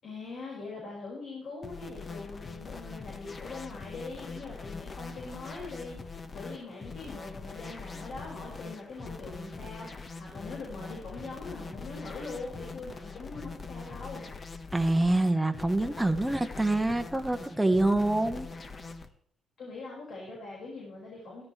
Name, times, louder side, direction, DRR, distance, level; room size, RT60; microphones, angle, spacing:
voice 1, 0.0-14.3 19.6-21.4, left 3 dB, 65° left, -3 dB, 5.4 m, -42 dB
sound 1, 1.6-19.1, left 4 dB, 35° left, 1.3 m, -43 dB
voice 2, 14.7-18.5, right 2 dB, 10° right, 6 dB, 1.1 m, -26 dB
15.0 x 13.5 x 3.3 m, 0.63 s
cardioid pair, 90°, 0 cm